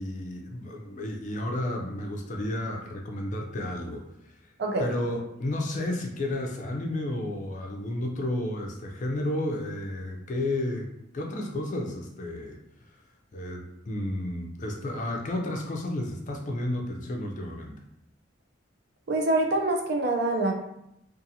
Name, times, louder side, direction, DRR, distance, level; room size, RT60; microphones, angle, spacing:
voice 1, 0.0-4.3 4.8-10.9 11.1-12.6 13.3-17.8, left 1 dB, 40° left, 1 dB, 0.4 m, -32 dB
voice 2, 4.6-4.9 19.1-20.5, right 2 dB, 60° right, 2 dB, 0.5 m, -25 dB
2.6 x 2.5 x 2.7 m, 0.81 s
head